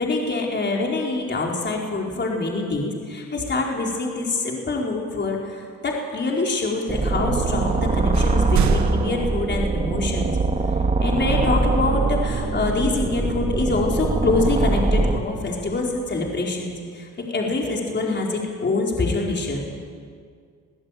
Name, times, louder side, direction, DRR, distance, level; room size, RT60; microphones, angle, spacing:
voice 1, 0.0-10.3 11.0-19.6, left 3 dB, 35° left, -1 dB, 4.4 m, -25 dB
sound 1, 6.9-15.2, right 3 dB, 25° right, 2.2 m, -22 dB
sound 2, 7.7-7.9 8.1-10.2, right 7 dB, 65° right, 1.1 m, -27 dB
22.5 x 15.5 x 9.2 m, 2.1 s
cardioid pair, 90°, 30 cm